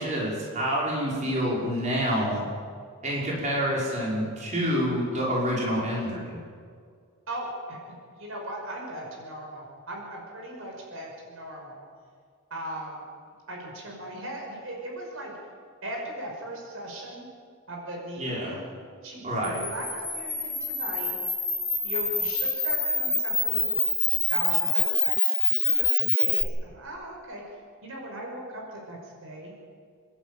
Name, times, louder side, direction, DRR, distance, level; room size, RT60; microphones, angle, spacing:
voice 1, 0.0-2.5 3.0-6.4 18.2-18.6 19.2-19.6, equal, 35° right, -4 dB, 5.4 m, -27 dB
voice 2, 7.3-11.8 12.5-13.0 13.5-15.3 15.8-17.3 17.7-18.6 19.0-21.2 21.8-23.8 24.1-25.3 25.6-27.4 27.8-29.5, right 1 dB, 70° right, 0 dB, 5.6 m, -38 dB
Camera, 19.4-26.4, left 3 dB, ahead, 3.7 m, -26 dB
28.5 x 12.0 x 9.1 m, 2.1 s
head